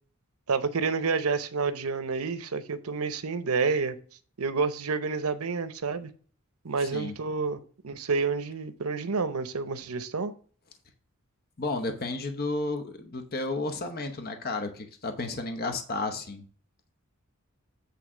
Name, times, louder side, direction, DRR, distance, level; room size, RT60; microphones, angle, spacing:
voice 1, 0.5-4.0 4.4-6.1 6.6-10.3, right 4 dB, 85° right, 0.8 m, -29 dB
voice 2, 6.8-7.1 11.6-16.4, left 2 dB, 45° left, 0.9 m, -32 dB
8.6 x 3.2 x 6.1 m
head